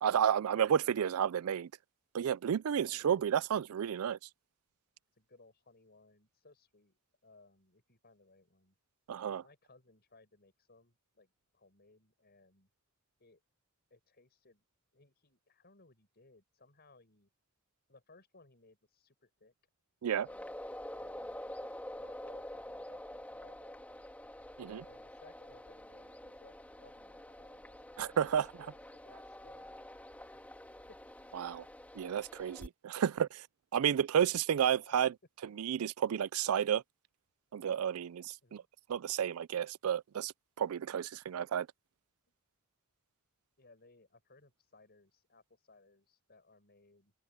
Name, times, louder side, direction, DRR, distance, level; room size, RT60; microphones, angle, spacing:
voice 1, 0.0-1.7 2.1-4.2 9.1-9.4 20.0-20.3 24.6-24.8 28.0-28.5 31.4-31.6 32.0-33.4 33.7-35.1 35.6-36.8 37.5-38.6 38.9-41.7, right 8 dB, 80° right, 0.4 m, -31 dB
voice 2, 2.7-3.1 5.1-8.7 9.2-12.7 13.2-13.4 13.9-14.6 14.9-17.3 17.9-19.5 20.0-20.6 20.9-24.5 24.8-29.8 30.3-30.5 30.9-31.0 33.1-33.3 33.9-34.1 34.4-34.9 38.4-38.7 43.6-47.1, left 3 dB, 50° left, 6.6 m, -64 dB
Mosquiter comú -Delta del Llobregat, 20.2-32.7, left 1 dB, 5° left, 2.6 m, -47 dB
open air
head